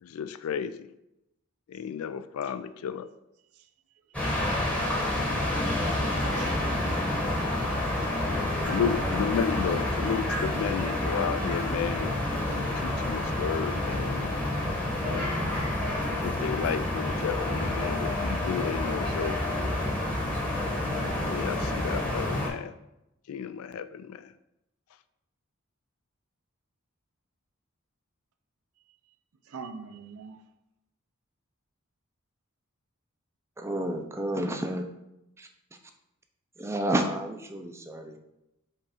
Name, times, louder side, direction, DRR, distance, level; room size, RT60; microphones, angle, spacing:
voice 1, 0.0-0.9 1.7-3.1 8.2-14.4 15.0-15.4 16.2-19.8 21.0-22.7 23.3-24.3, left 7 dB, 75° left, 0.3 m, -33 dB
sound 1, 4.1-22.5, left 1 dB, 5° left, 0.9 m, -29 dB
voice 2, 6.3-7.4 8.0-8.5 29.5-30.4, right 4 dB, 90° right, 0.5 m, -44 dB
voice 3, 33.6-34.8 35.4-35.5 36.6-38.2, right 1 dB, 15° right, 0.4 m, -30 dB
5.3 x 2.4 x 4.1 m
head